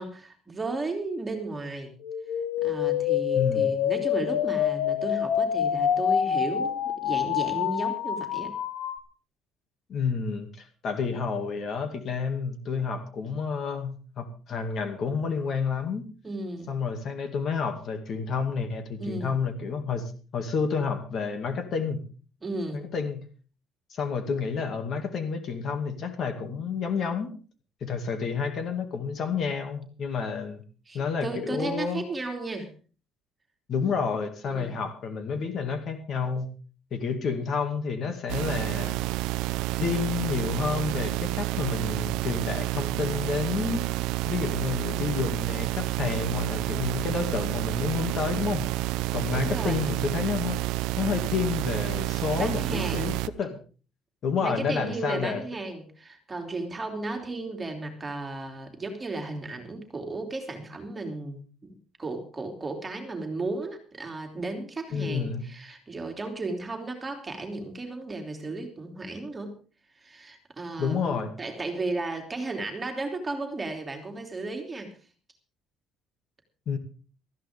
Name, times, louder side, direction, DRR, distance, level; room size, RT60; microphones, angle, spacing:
voice 1, 0.0-1.9 2.6-8.5 16.2-16.7 19.0-19.4 22.4-22.8 30.9-32.7 34.5-34.8 49.3-49.9 52.4-53.1 54.4-69.5 69.9-74.9, right 2 dB, 15° right, 3 dB, 3.1 m, -34 dB
sound 1, 2.0-9.0, left 9 dB, 85° left, 1.7 m, -26 dB
voice 2, 3.3-3.7 9.9-16.1 16.7-22.0 22.7-23.3 23.9-27.3 27.8-30.6 30.9-32.0 33.7-36.5 36.9-39.0 39.8-43.9 44.2-48.7 49.1-50.6 51.0-53.6 54.2-55.4 64.9-65.5 70.8-71.3 76.7-76.8, left 5 dB, 40° left, 6 dB, 2.4 m, -30 dB
sound 2, 38.3-53.3, right 18 dB, 90° right, 0.6 m, -29 dB
19.0 x 14.0 x 3.7 m, 0.38 s
cardioid pair, 155°, 0 cm